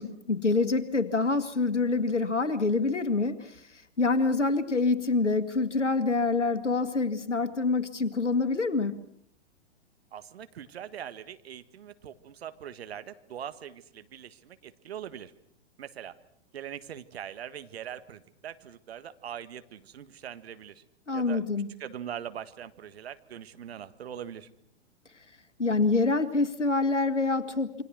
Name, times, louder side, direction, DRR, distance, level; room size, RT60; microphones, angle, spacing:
voice 1, 0.0-3.6 4.0-8.9 21.1-21.7 25.6-27.8, left 3 dB, 80° left, 10 dB, 2.2 m, -26 dB
voice 2, 10.1-15.3 15.8-16.2 16.5-20.8 21.1-21.4 21.8-24.5, right 9 dB, 60° right, 11 dB, 1.7 m, -42 dB
27.5 x 24.5 x 6.3 m, 0.70 s
figure-of-eight pair, 105°, 35 cm